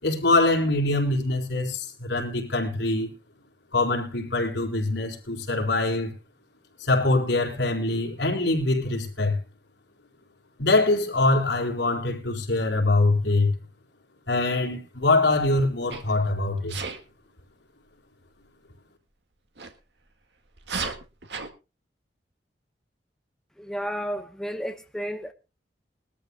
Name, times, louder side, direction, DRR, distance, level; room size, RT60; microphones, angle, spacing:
voice 1, 0.0-3.1 3.7-6.1 6.8-9.4 10.6-13.5 14.3-16.8, left 2 dB, 85° left, 4.3 m, -23 dB
Sneeze, 15.9-16.2 16.7-17.0 19.6-19.7 20.6-21.5, right 5 dB, 75° right, 1.8 m, -33 dB
voice 2, 23.6-25.3, equal, 5° left, 0.9 m, -32 dB
22.0 x 13.5 x 2.2 m
head